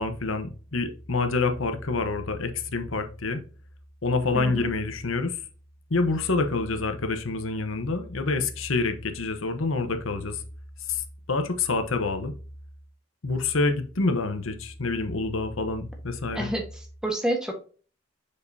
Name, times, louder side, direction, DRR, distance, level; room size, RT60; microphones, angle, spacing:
voice 1, 0.0-3.4 4.0-5.4 5.9-10.4 10.9-12.3 13.2-16.5, left 3 dB, 80° left, 8 dB, 1.0 m, -27 dB
voice 2, 4.3-4.7 16.3-17.6, right 1 dB, 5° right, 2 dB, 1.3 m, -29 dB
6.7 x 5.2 x 2.7 m, 0.38 s
head